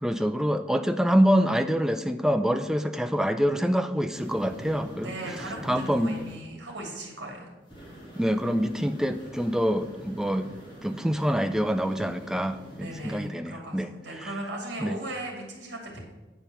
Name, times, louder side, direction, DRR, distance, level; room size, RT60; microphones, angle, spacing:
voice 1, 0.0-5.1 5.6-6.2 8.2-10.5 10.8-13.9 14.2-14.3 14.8-15.0, equal, 5° right, 8 dB, 0.3 m, -26 dB
sound 1, 4.1-6.3 7.7-13.2, equal, 25° left, 2.2 m, -43 dB
voice 2, 5.0-7.5 12.8-16.0, right 1 dB, 75° right, 0 dB, 2.5 m, -37 dB
9.0 x 4.5 x 6.8 m, 1.1 s
head